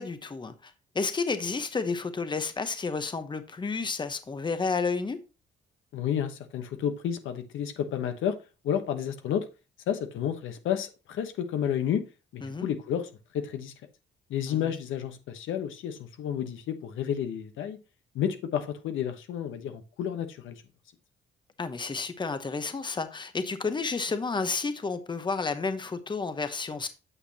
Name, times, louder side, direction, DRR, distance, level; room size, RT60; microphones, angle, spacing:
voice 1, 0.0-5.2 12.4-12.7 14.5-14.7 21.6-26.9, left 4 dB, 25° left, 0.9 m, -31 dB
voice 2, 5.9-8.4 8.6-9.4 9.9-12.0 12.3-13.7 14.3-17.8 18.1-20.5, left 9 dB, 80° left, 1.0 m, -31 dB
8.9 x 6.5 x 2.8 m
cardioid pair, 90°, 20 cm